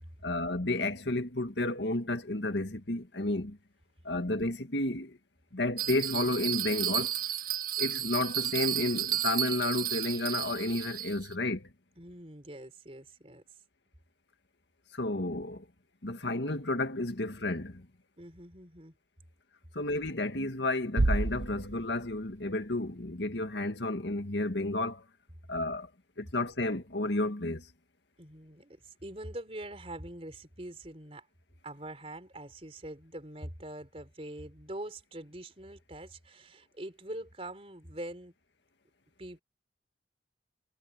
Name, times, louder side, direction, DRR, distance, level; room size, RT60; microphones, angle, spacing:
voice 1, 0.2-3.6 4.0-5.2 5.5-7.2 7.8-11.7 14.9-15.7 16.0-17.9 19.7-25.0 25.5-25.9 26.2-27.7, left 2 dB, 75° left, 1.9 m, -31 dB
Bell, 5.8-11.3, right 11 dB, 55° right, 1.6 m, -33 dB
voice 2, 12.0-13.4 18.2-19.0 28.2-31.3 31.6-38.3 39.2-39.4, right 1 dB, 35° right, 4.1 m, -44 dB
Bass drum, 21.0-22.7, right 2 dB, 80° right, 1.0 m, -30 dB
head